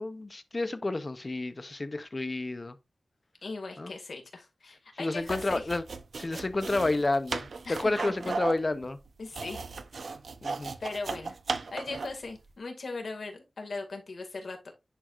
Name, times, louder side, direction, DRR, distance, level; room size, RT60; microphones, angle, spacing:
voice 1, 0.0-2.8 3.8-3.9 5.0-5.8 6.1-9.0 10.4-10.7, left 2 dB, 35° left, 0.8 m, -30 dB
voice 2, 3.4-5.7 7.6-7.9 9.2-9.6 10.8-14.7, left 3 dB, 75° left, 2.1 m, -39 dB
sound 1, 5.2-12.2, right 4 dB, 75° right, 0.7 m, -36 dB
10.0 x 4.7 x 2.4 m
wide cardioid pair, 90°, 0 cm